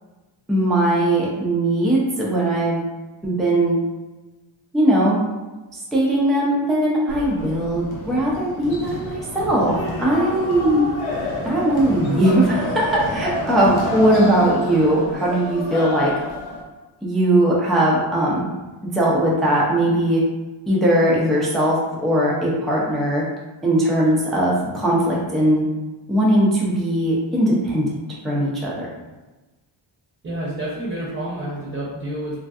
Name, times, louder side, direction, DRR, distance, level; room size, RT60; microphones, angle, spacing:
voice 1, 0.5-2.8 3.2-3.8 4.7-5.2 5.7-10.9 11.4-16.1 17.0-18.4 18.8-20.2 20.7-23.2 23.6-25.7 26.1-27.9 28.2-28.9, right 1 dB, ahead, -5 dB, 0.3 m, -19 dB
sound 1, 7.1-16.6, left 2 dB, 85° left, 0.8 m, -29 dB
voice 2, 30.2-32.4, right 1 dB, 25° right, -7 dB, 0.7 m, -29 dB
3.2 x 2.6 x 2.3 m, 1.1 s
wide cardioid pair, 170°, 47 cm